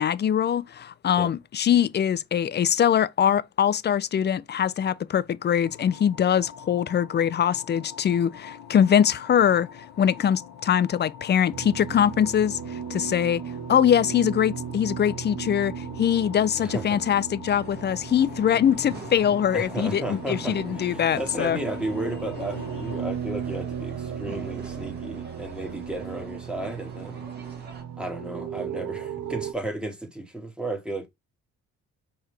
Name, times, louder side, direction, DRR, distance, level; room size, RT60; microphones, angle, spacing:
voice 1, 0.0-9.7 10.0-13.4 13.7-21.6, left 9 dB, 35° left, 0.4 m, -23 dB
sound 1, 5.6-23.1, left 8 dB, 80° left, 0.9 m, -43 dB
sound 2, 11.5-29.5, right 8 dB, 60° right, 0.8 m, -36 dB
voice 2, 16.6-17.0 19.5-27.2 28.0-31.1, right 1 dB, 5° right, 1.6 m, -34 dB
sound 3, 17.5-27.8, right 3 dB, 35° right, 1.6 m, -45 dB
4.6 x 3.4 x 3.3 m
cardioid pair, 90°, 30 cm